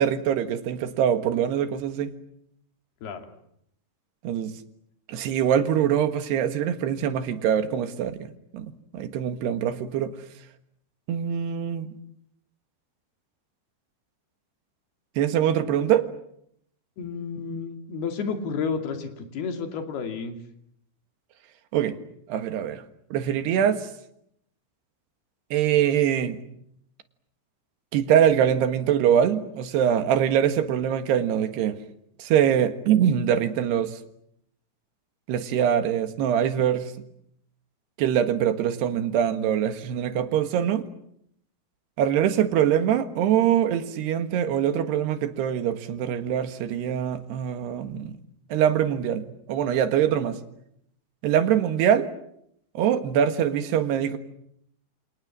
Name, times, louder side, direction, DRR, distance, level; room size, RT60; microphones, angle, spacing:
voice 1, 0.0-2.1 4.2-4.5 5.1-8.7 8.9-10.1 11.1-11.9 15.2-16.1 21.7-22.0 22.3-22.8 23.1-23.9 25.5-26.4 27.9-31.8 32.2-34.0 35.3-36.9 38.0-40.9 42.0-48.1 48.5-50.4 51.2-52.1 52.8-54.2, right 9 dB, 80° right, 9 dB, 3.7 m, -23 dB
voice 2, 17.0-20.4, left 5 dB, 75° left, 6 dB, 4.5 m, -31 dB
29.0 x 26.5 x 7.5 m, 0.73 s
omnidirectional pair, 4.7 m